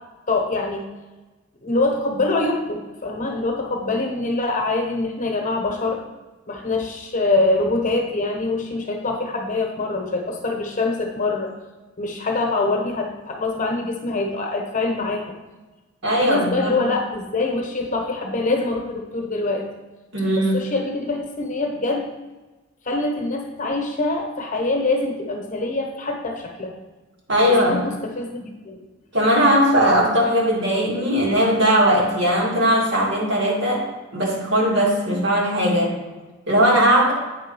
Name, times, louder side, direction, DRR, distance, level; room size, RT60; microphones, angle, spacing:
voice 1, 0.3-0.8 1.6-6.0 6.5-11.5 12.0-15.3 16.2-19.7 20.4-22.1 22.8-26.8 27.4-28.8, left 2 dB, 40° left, 2 dB, 1.0 m, -24 dB
voice 2, 16.0-16.7 20.1-20.7 27.3-27.9 29.1-33.8 34.1-36.0 36.5-37.1, equal, 60° right, -3 dB, 2.1 m, -19 dB
8.1 x 3.8 x 5.4 m, 1.2 s
head